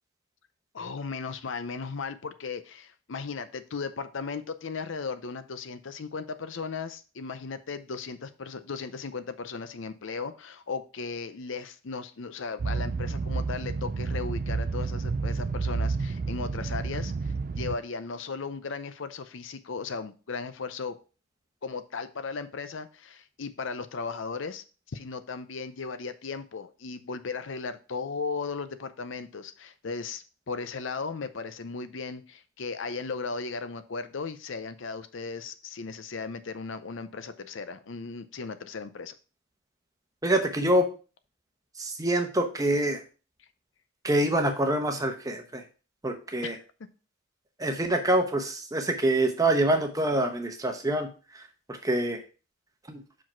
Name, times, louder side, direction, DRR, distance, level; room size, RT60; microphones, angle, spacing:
voice 1, 0.7-21.0 21.6-24.6 24.9-39.2 46.4-46.6, left 4 dB, 60° left, 11 dB, 0.6 m, -36 dB
sound 1, 12.6-17.8, right 4 dB, 40° right, 0.3 m, -30 dB
voice 2, 40.2-40.9 41.8-43.0 44.0-45.6 46.0-46.6 47.6-51.1 51.3-51.4 51.7-52.2 52.9-53.0, right 1 dB, 15° right, 5 dB, 0.9 m, -25 dB
6.0 x 5.0 x 4.4 m, 0.35 s
head